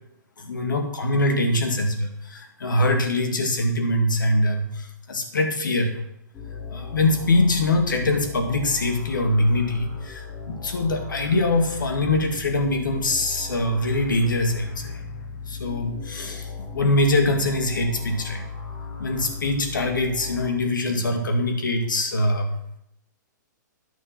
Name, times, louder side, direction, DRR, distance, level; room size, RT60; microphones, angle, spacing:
voice 1, 0.4-5.9 6.7-15.0 15.5-18.5 19.0-22.6, left 1 dB, 80° left, 5 dB, 2.1 m, -23 dB
sound 1, 6.3-20.5, left 5 dB, 25° left, 2.4 m, -36 dB
10.0 x 6.7 x 5.7 m, 0.77 s
hypercardioid pair, 125°, 10 cm